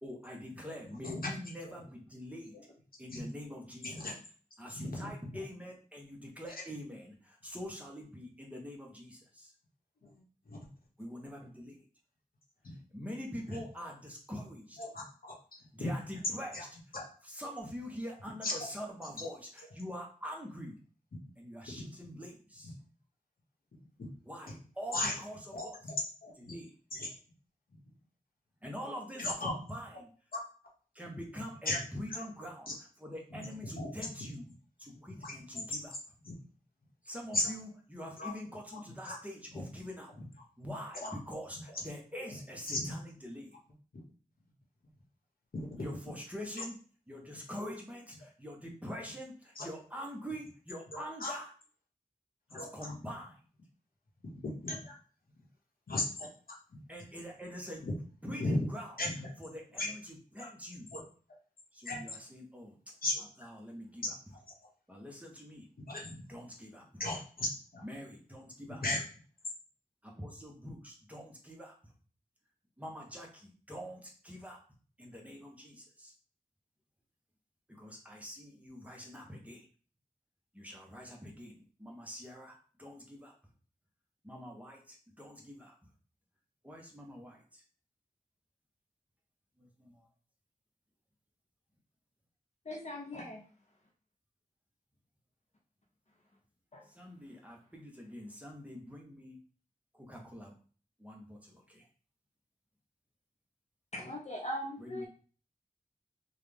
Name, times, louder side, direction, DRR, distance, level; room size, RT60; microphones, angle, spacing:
voice 1, 0.0-2.6 3.0-4.2 4.6-9.5 11.0-11.9 12.9-14.8 15.7-16.9 17.2-20.8 21.4-22.7 24.2-25.9 26.3-26.7 28.6-30.1 30.9-34.5 34.8-36.2 37.0-40.1 40.6-43.6 45.8-46.8 47.1-51.5 52.5-53.4 56.9-57.9 58.2-60.9 61.7-64.4 64.9-65.6 66.3-67.1 67.8-69.0 70.0-71.9 72.8-74.6 75.0-76.1 77.7-79.7 80.5-83.3 84.2-85.7 86.6-87.6 89.6-90.1 96.8-99.4 99.9-100.5 101.0-101.9 104.8-105.1, equal, 10° right, -1 dB, 1.0 m, -45 dB
voice 2, 4.7-5.1 10.0-10.6 12.6-12.8 14.8-15.3 15.8-15.9 16.5-16.6 16.9-17.1 18.4-18.5 24.9-25.1 25.5-25.9 26.2-26.5 26.9-27.1 27.7-27.8 29.2-29.5 30.3-30.4 31.7-31.8 32.1-32.2 33.7-33.9 35.2-35.3 36.2-36.3 37.3-37.4 38.2-38.3 39.1-39.2 39.5-39.6 41.1-41.2 42.7-42.9 43.9-44.0 45.5-45.8 49.6-49.7 50.9-51.3 52.5-52.7 54.2-54.9 55.9-56.3 56.7-56.8 57.8-57.9 58.4-58.6 59.0-59.1 59.8-59.9 60.9-61.0 61.8-62.0 63.0-63.2 65.9-66.2 67.0-67.8 68.8-69.0, left 2 dB, 85° left, -2 dB, 1.3 m, -36 dB
voice 3, 92.6-93.4 96.7-96.9 103.9-105.1, equal, 50° left, -2 dB, 0.7 m, -40 dB
3.9 x 2.4 x 3.5 m, 0.40 s
wide cardioid pair, 70°, 15 cm